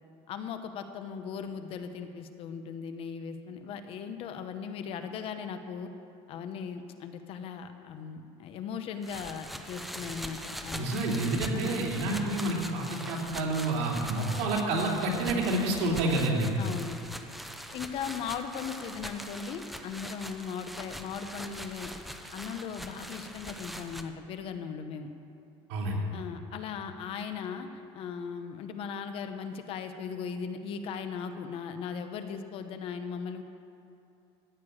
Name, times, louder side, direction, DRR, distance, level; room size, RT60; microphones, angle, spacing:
voice 1, 0.3-5.9 6.3-11.0 11.5-11.9 16.6-17.0 17.7-21.9 22.3-25.1 26.1-33.4, left 6 dB, 45° left, 8 dB, 0.9 m, -38 dB
sound 1, 9.0-24.0, equal, ahead, 0.6 m, -42 dB
voice 2, 10.7-16.5 25.7-26.0, right 2 dB, 90° right, -2 dB, 3.1 m, -29 dB
14.5 x 6.8 x 8.8 m, 2.7 s
cardioid pair, 165°, 14 cm